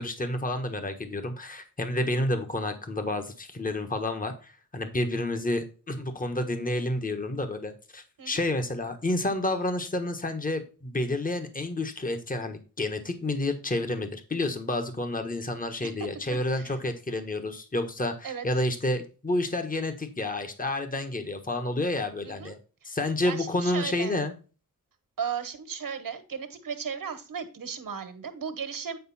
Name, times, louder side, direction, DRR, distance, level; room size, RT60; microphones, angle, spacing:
voice 1, 0.0-22.6 22.8-24.3, left 1 dB, 25° left, 7 dB, 1.4 m, -30 dB
voice 2, 22.2-22.5 23.2-24.2 25.2-29.0, right 7 dB, 80° right, 9 dB, 1.5 m, -35 dB
9.4 x 5.2 x 4.2 m, 0.35 s
wide cardioid pair, 100°, 34 cm